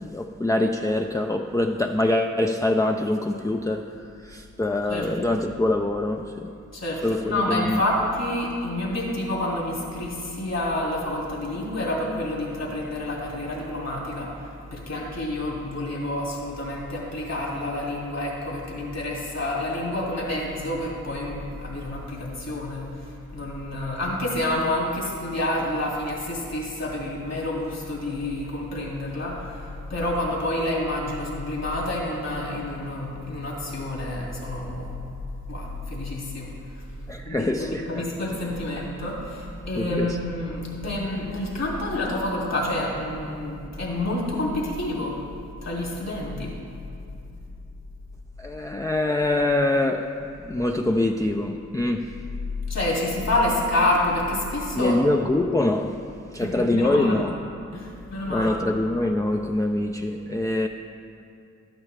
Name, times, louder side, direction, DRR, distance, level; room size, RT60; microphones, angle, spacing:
voice 1, 0.0-3.9 4.2-6.5 7.0-7.8 37.1-38.0 39.8-40.2 48.4-50.1 50.4-52.1 54.8-56.0 56.3-57.3 58.3-60.7, left 2 dB, 10° left, 3 dB, 0.4 m, -24 dB
voice 2, 6.7-14.3 14.7-35.0 35.5-36.5 37.2-45.2 45.6-46.5 52.7-55.0 56.4-57.2 57.7-58.6, left 1 dB, 55° left, -4 dB, 2.4 m, -28 dB
12.0 x 9.0 x 3.3 m, 2.5 s
cardioid pair, 45°, 31 cm